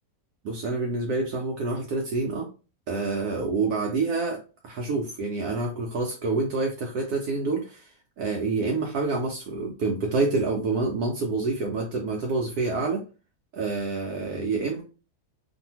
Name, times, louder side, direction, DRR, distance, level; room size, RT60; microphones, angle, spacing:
voice 1, 0.4-2.5 2.9-7.9 8.2-13.0 13.5-14.8, right 3 dB, 75° right, 0 dB, 1.1 m, -27 dB
2.7 x 2.6 x 2.7 m, 0.33 s
omnidirectional pair, 1.7 m